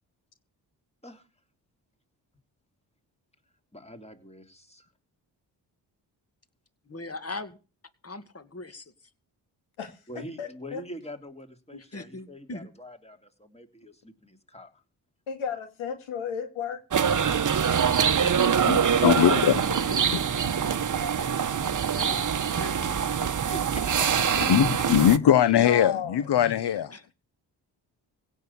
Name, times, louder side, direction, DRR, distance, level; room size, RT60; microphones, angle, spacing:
voice 1, 3.7-4.9 10.1-14.7 23.2-24.5, equal, 15° left, 3.0 m, -44 dB
voice 2, 6.9-7.6 8.0-8.9 11.9-12.7 19.1-20.2 21.8-23.2 26.6-27.1, left 3 dB, 30° left, 2.2 m, -39 dB
voice 3, 9.8-10.8 15.3-16.8 25.5-26.2, left 7 dB, 80° left, 2.6 m, -34 dB
sound 1, 16.9-25.2, right 7 dB, 40° right, 1.0 m, -24 dB
voice 4, 18.1-19.5 19.9-20.5 21.8-22.0 24.4-26.9, left 10 dB, 55° left, 1.0 m, -22 dB
16.5 x 6.3 x 8.5 m
supercardioid pair, 45°, 48 cm